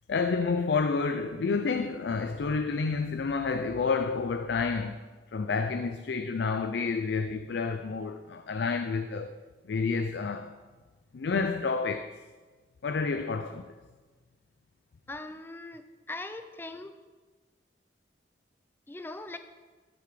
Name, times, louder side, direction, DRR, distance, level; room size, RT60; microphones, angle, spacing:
voice 1, 0.1-5.0 5.3-9.4 9.6-10.5 11.1-12.1 12.8-13.7, left 4 dB, 75° left, 0.4 m, -29 dB
voice 2, 15.1-16.9 18.9-19.4, left 2 dB, 10° left, 0.4 m, -40 dB
13.5 x 5.8 x 5.0 m
head